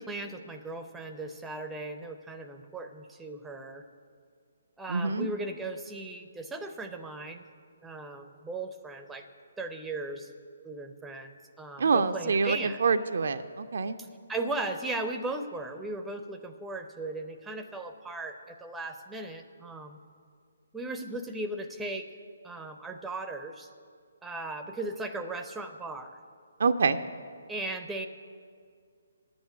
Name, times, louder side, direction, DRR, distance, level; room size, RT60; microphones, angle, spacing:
voice 1, 0.0-3.8 4.8-7.4 7.8-9.3 9.6-10.3 10.6-12.8 14.3-20.0 20.7-22.1 22.4-23.7 24.2-26.2 27.5-28.1, right 2 dB, 5° right, 6 dB, 0.6 m, -37 dB
voice 2, 4.9-5.3 11.8-14.0 26.6-27.0, right 4 dB, 55° right, 9 dB, 0.5 m, -26 dB
9.9 x 7.9 x 9.3 m, 2.2 s
figure-of-eight pair, 135°, 0 cm